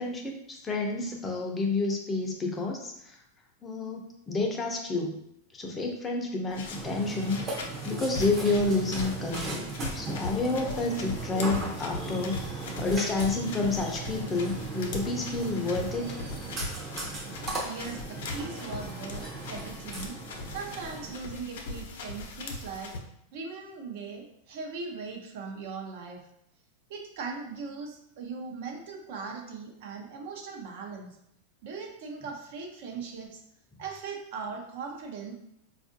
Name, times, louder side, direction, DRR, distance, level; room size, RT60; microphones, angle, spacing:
voice 1, 0.0-3.2 3.6-5.2 5.5-7.4 7.8-9.7 9.9-16.1, left 3 dB, 15° left, 1 dB, 0.5 m, -29 dB
sound 1, 6.5-23.0, left 2 dB, 80° left, 0.6 m, -40 dB
Burping eructation, 6.7-21.1, right 3 dB, 25° right, 0.7 m, -37 dB
voice 2, 17.6-19.2 19.5-20.2 20.5-22.9 23.3-26.3 26.9-31.2 31.6-33.4 33.8-35.3, right 4 dB, 65° right, 2 dB, 0.7 m, -39 dB
4.2 x 2.5 x 2.6 m, 0.76 s
supercardioid pair, 140°, 0 cm